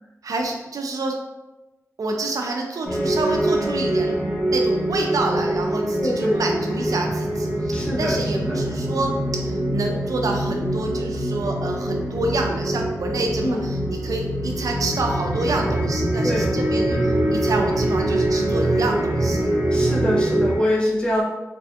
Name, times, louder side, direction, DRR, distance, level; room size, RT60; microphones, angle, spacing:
voice 1, 0.2-1.1 2.0-4.2 4.5-19.5, right 2 dB, 70° right, 2 dB, 0.4 m, -28 dB
sound 1, 2.8-20.6, right 1 dB, 20° right, 1.2 m, -24 dB
voice 2, 6.0-6.4 7.7-8.7 13.4-13.7 16.2-16.6 16.9-17.1 19.7-21.2, equal, 15° left, -3 dB, 0.8 m, -25 dB
3.3 x 2.4 x 2.4 m, 1.0 s
wide cardioid pair, 80°, 6 cm